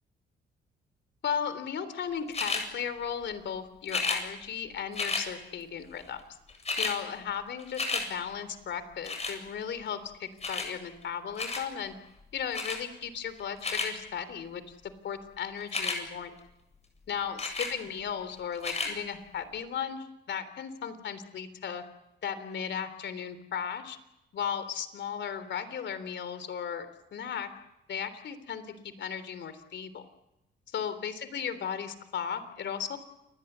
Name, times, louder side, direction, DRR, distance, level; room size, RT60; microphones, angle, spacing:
voice 1, 1.2-6.2 6.8-11.9 12.3-14.8 15.0-16.3 17.1-21.8 22.2-24.0 24.3-26.9 27.1-27.5 27.9-30.1 30.7-33.0, left 8 dB, 65° left, 12 dB, 3.4 m, -36 dB
sound 1, 2.3-2.7 3.9-4.2 4.9-5.3 6.2-6.3 6.5-7.0 7.3-8.1 9.1-9.4 10.4-10.7 11.4-11.7 12.5-12.8 13.4-13.9 15.6-16.0 17.4-17.7 18.6-18.9 19.6-19.7, left 3 dB, 35° left, 8.0 m, -31 dB
29.0 x 21.0 x 8.2 m, 0.92 s
cardioid pair, 90°, 20 cm